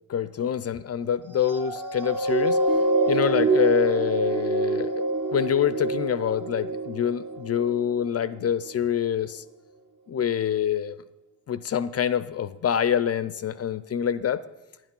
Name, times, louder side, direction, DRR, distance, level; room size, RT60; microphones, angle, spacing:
voice 1, 0.1-2.6 3.1-4.9 5.3-9.4 10.1-11.0 11.5-14.4, left 9 dB, 35° left, 16 dB, 0.5 m, -26 dB
sound 1, 1.4-8.1 8.7-8.8, right 2 dB, 45° right, 1.5 m, -26 dB
9.9 x 8.9 x 5.4 m, 1.0 s
hypercardioid pair, 40°, 45 cm